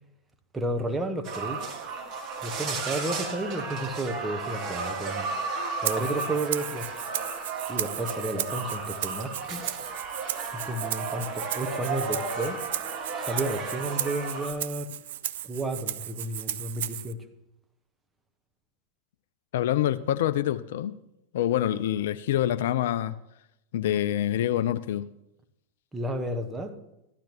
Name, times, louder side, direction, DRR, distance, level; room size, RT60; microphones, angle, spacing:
voice 1, 0.5-1.7 2.4-5.3 5.8-6.9 7.7-9.6 10.5-12.6 13.1-14.9 15.4-17.2 25.9-26.7, right 1 dB, 10° right, 5 dB, 1.1 m, -32 dB
sound 1, 1.2-14.5, right 4 dB, 35° right, 1.8 m, -34 dB
Rattle (instrument), 5.8-17.1, right 12 dB, 55° right, 0.4 m, -35 dB
voice 2, 19.5-20.9 21.3-23.1 23.7-25.1, left 12 dB, 55° left, 14 dB, 0.4 m, -26 dB
15.0 x 11.5 x 3.0 m, 0.87 s
figure-of-eight pair, 90°, 0 cm